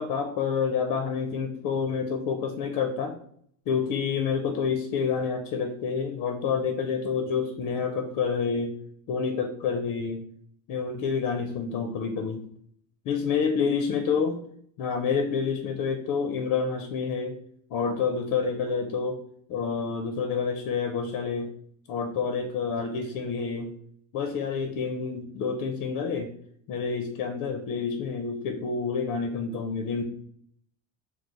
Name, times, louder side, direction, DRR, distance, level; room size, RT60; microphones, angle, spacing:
voice 1, 0.0-3.2 3.7-8.7 9.1-10.2 10.7-12.4 13.0-14.4 14.8-17.4 17.7-19.2 19.5-21.5 21.9-23.7 24.1-26.3 26.7-30.0, left 5 dB, 55° left, 6 dB, 0.5 m, -28 dB
3.1 x 2.0 x 3.8 m, 0.65 s
supercardioid pair, 105°, 38 cm